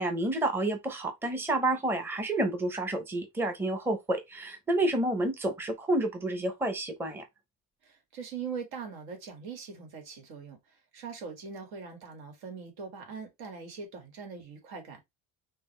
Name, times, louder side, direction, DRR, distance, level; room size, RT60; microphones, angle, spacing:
voice 1, 0.0-7.3, right 2 dB, 5° right, 0.7 m, -29 dB
voice 2, 7.8-10.6 10.9-15.0, right 5 dB, 75° right, 2.1 m, -41 dB
5.5 x 2.5 x 3.3 m
cardioid pair, 140°, 38 cm